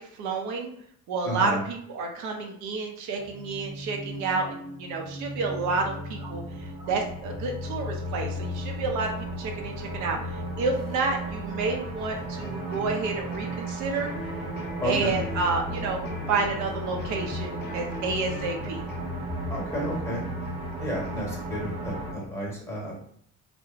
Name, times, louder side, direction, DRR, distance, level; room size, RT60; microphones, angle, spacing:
voice 1, 0.2-0.7 1.1-4.5 4.8-9.1 9.4-14.1 14.8-16.0 16.3-18.8, right 4 dB, 80° right, 2 dB, 0.6 m, -30 dB
voice 2, 1.2-1.6 14.8-15.2 19.5-20.3 20.8-23.0, equal, 10° left, -4 dB, 0.9 m, -31 dB
sound 1, 3.2-22.1, right 1 dB, 20° right, 0.9 m, -35 dB
sound 2, 12.3-22.4, left 2 dB, 35° left, 0.4 m, -42 dB
2.7 x 2.1 x 2.4 m, 0.64 s
cardioid pair, 120°, 29 cm